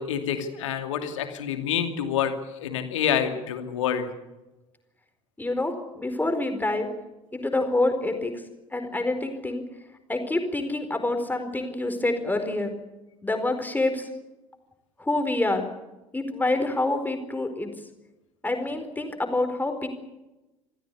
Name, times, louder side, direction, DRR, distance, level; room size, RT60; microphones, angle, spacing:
voice 1, 0.0-2.3 2.6-4.1, left 8 dB, 70° left, 7 dB, 2.6 m, -27 dB
voice 2, 5.4-6.9 7.3-8.3 8.7-9.6 10.1-12.7 13.2-14.1 15.0-15.6 16.1-17.7 18.4-19.9, left 2 dB, 10° left, 6 dB, 4.5 m, -27 dB
26.5 x 16.0 x 8.4 m, 1.0 s
figure-of-eight pair, 60°, 17 cm